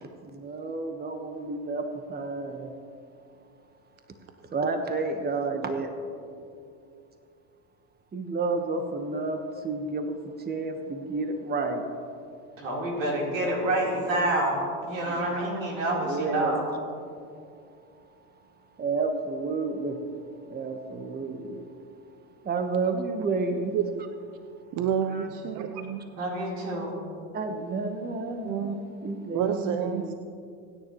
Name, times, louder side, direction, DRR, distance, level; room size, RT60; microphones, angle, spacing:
voice 1, 0.0-2.7 4.5-5.9 8.1-11.9 15.1-15.2 16.0-16.6 18.8-20.0 20.4-21.7 22.4-23.8 25.1-25.3 27.3-30.1, right 3 dB, 25° right, 6 dB, 1.4 m, -31 dB
voice 2, 12.5-14.6 14.9-16.6 26.1-27.0, right 1 dB, 90° right, -3 dB, 4.1 m, -28 dB
voice 3, 24.7-26.0 28.4-28.8 29.3-30.1, right 8 dB, 55° right, 7 dB, 0.8 m, -29 dB
25.5 x 9.9 x 3.2 m, 2.4 s
hypercardioid pair, 85°, 38 cm